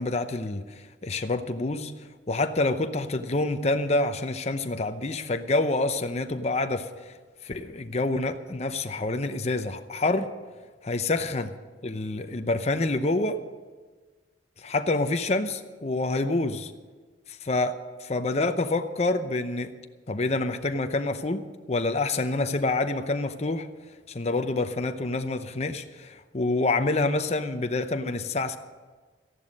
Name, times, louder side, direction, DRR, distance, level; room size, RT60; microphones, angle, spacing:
voice 1, 0.0-1.9 2.3-7.1 7.4-10.3 10.8-11.5 11.8-13.4 14.6-16.7 17.3-19.7 20.1-21.4 21.7-23.7 24.1-28.6, left 2 dB, 35° left, 8 dB, 0.7 m, -27 dB
13.5 x 11.5 x 6.4 m, 1.4 s
head